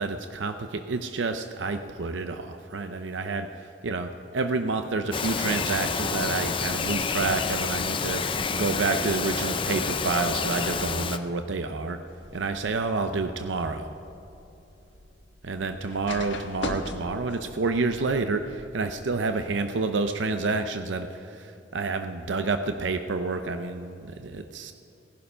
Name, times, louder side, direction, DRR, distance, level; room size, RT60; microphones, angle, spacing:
voice 1, 0.0-12.0 12.3-13.9 15.4-24.7, right 3 dB, 90° right, 8 dB, 0.6 m, -29 dB
Bird vocalization bird call bird song, 5.1-11.2, left 5 dB, 30° left, 0.5 m, -28 dB
sound 1, 12.1-19.2, left 2 dB, 85° left, 1.3 m, -41 dB
17.5 x 11.0 x 5.6 m, 2.9 s
head